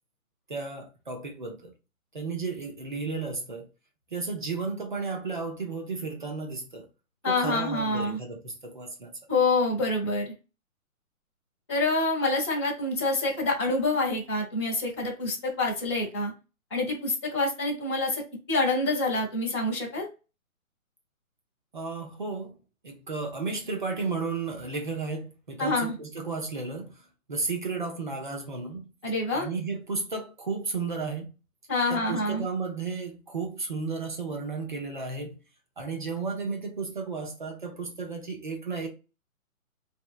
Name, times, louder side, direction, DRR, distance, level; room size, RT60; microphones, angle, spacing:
voice 1, 0.5-1.7 2.1-3.7 4.1-6.9 7.3-9.1 21.7-22.5 22.8-27.0 27.3-28.9 29.3-31.3 31.9-35.4 35.8-38.9, right 4 dB, 35° right, 0.7 m, -33 dB
voice 2, 7.2-8.2 9.3-10.3 11.7-16.3 16.7-18.2 18.5-20.1 25.6-26.0 29.0-29.5 31.7-32.5, left 2 dB, 20° left, 0.9 m, -27 dB
3.2 x 2.7 x 2.4 m
hypercardioid pair, 175°, 42 cm